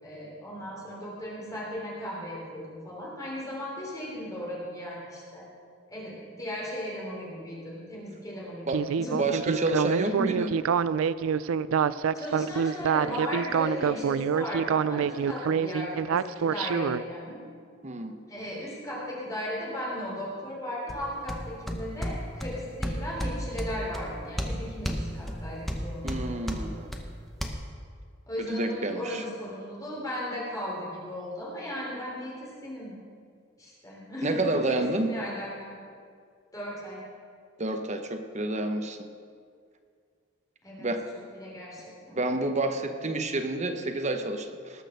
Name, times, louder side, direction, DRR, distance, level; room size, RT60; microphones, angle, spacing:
voice 1, 0.0-5.4 5.9-9.2 12.1-17.4 18.3-26.4 28.3-32.9 33.6-35.7 36.5-37.0 40.6-40.9 41.3-42.2, equal, 15° left, -5 dB, 3.4 m, -36 dB
Speech synthesizer, 8.7-17.0, right 7 dB, 75° right, 0.3 m, -26 dB
voice 2, 9.1-10.6 17.8-18.2 26.0-26.9 28.4-29.2 34.2-35.1 37.6-39.1 40.8-41.1 42.1-44.8, right 2 dB, 35° right, 6 dB, 0.8 m, -29 dB
sound 1, 20.9-27.5, equal, ahead, 0.9 m, -34 dB
19.0 x 6.4 x 6.5 m, 2.1 s
head